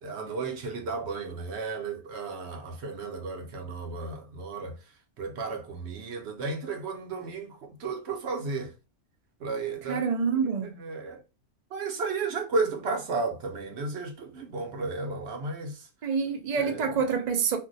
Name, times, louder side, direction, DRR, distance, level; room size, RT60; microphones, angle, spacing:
voice 1, 0.0-4.8 5.2-8.7 9.4-10.1 10.6-11.2 11.7-15.9 16.6-17.0, right 4 dB, 55° right, 0.8 m, -33 dB
voice 2, 9.9-10.8 16.0-17.6, right 6 dB, 80° right, 0.3 m, -27 dB
2.5 x 2.2 x 3.8 m
omnidirectional pair, 1.5 m